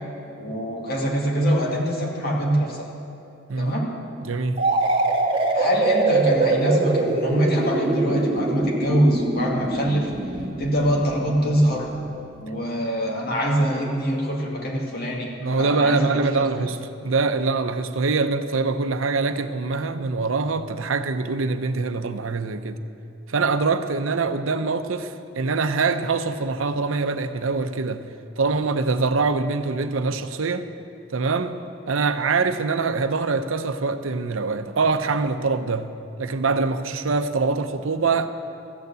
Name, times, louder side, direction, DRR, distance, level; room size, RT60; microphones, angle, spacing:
voice 1, 0.4-2.9 3.6-3.9 5.5-10.1 10.6-11.9 12.4-16.5, equal, 50° left, 2.3 m, -24 dB
voice 2, 4.2-4.7 15.4-22.8 23.3-28.1 28.4-30.7 31.1-38.3, right 4 dB, 85° right, 0.7 m, -24 dB
sound 1, 4.6-12.2, right 2 dB, 30° right, 1.8 m, -24 dB
14.0 x 9.4 x 8.2 m
head